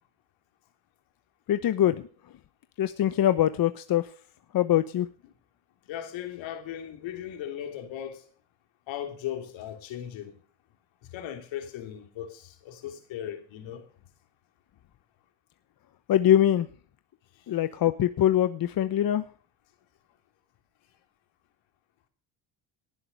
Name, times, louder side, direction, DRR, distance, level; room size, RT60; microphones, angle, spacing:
voice 1, 1.5-2.1 2.8-4.1 4.5-5.1 16.1-16.7 17.5-19.2, left 11 dB, 50° left, 1.0 m, -23 dB
voice 2, 5.9-8.2 8.9-10.3 11.1-13.8, left 10 dB, 70° left, 3.1 m, -37 dB
18.0 x 7.8 x 5.4 m
supercardioid pair, 85°, 47 cm